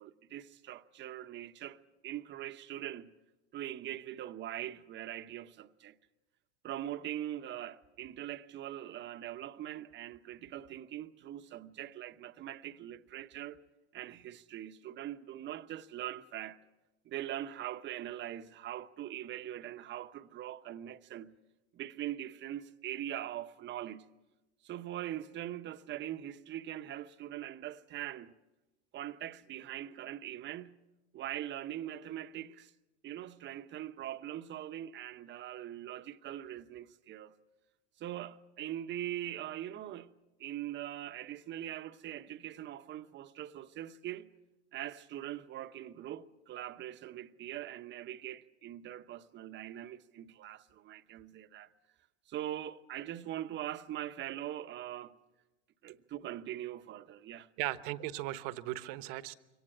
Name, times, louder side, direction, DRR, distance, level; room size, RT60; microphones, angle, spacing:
voice 1, 0.0-1.8 2.0-3.1 3.5-6.0 6.6-13.6 13.9-16.6 17.0-21.3 21.7-24.1 24.6-28.3 28.9-30.8 31.1-32.7 33.0-37.4 38.0-40.1 40.4-44.3 44.7-51.7 52.3-55.2 55.8-57.5, right 12 dB, 30° right, 0.9 m, -42 dB
voice 2, 57.6-59.3, right 16 dB, 55° right, 1.1 m, -37 dB
23.5 x 18.5 x 7.6 m
hypercardioid pair, 115°, 35 cm